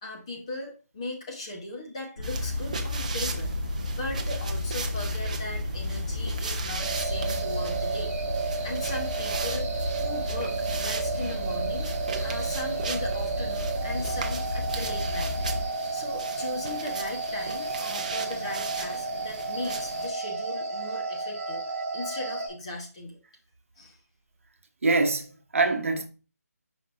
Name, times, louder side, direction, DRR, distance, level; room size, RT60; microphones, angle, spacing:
voice 1, 0.0-3.5 3.9-8.1 8.6-9.7 10.0-11.9 12.2-15.3 15.9-23.2 23.8-24.0, left 2 dB, 20° left, 1.1 m, -38 dB
sound 1, 2.2-15.6, left 1 dB, 75° left, 3.0 m, -32 dB
sound 2, 2.2-20.1, right 4 dB, 25° right, 0.6 m, -38 dB
sound 3, 6.8-22.5, right 4 dB, 5° right, 2.5 m, -32 dB
voice 2, 24.8-26.1, right 3 dB, 55° right, 1.1 m, -24 dB
9.1 x 5.3 x 2.6 m
hypercardioid pair, 175°, 9 cm